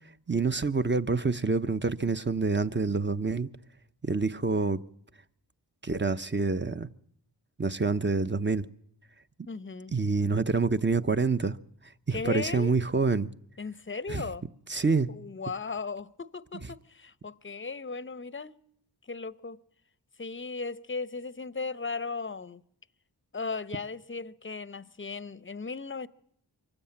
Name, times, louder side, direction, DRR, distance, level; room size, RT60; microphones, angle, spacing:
voice 1, 0.3-3.5 4.0-4.8 5.8-6.9 7.6-8.7 9.9-11.6 12.1-13.3 14.1-14.2 14.7-15.1, right 4 dB, 25° right, 0.8 m, -27 dB
voice 2, 9.5-9.9 12.1-12.7 13.6-14.4 15.1-18.6 19.0-19.6 20.2-22.6 23.3-26.1, left 4 dB, 25° left, 0.8 m, -36 dB
24.0 x 15.5 x 8.8 m
cardioid pair, 50°, 45 cm